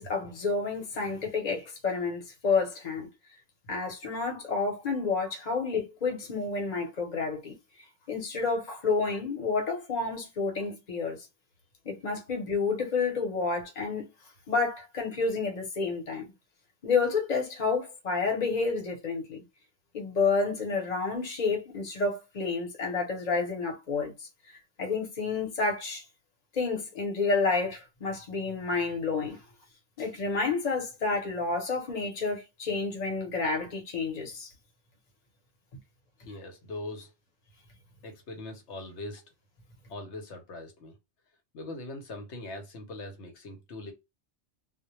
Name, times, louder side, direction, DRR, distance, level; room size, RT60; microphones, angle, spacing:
voice 1, 0.0-3.1 3.7-7.5 8.1-11.2 11.8-14.1 14.5-16.3 16.8-19.4 19.9-24.3 24.8-26.0 26.5-29.4 30.0-34.5, left 4 dB, 40° left, 0.9 m, -30 dB
voice 2, 36.2-37.1 38.0-39.3 39.9-41.0 41.5-43.9, left 2 dB, 80° left, 1.0 m, -41 dB
2.2 x 2.1 x 2.9 m
omnidirectional pair, 1.2 m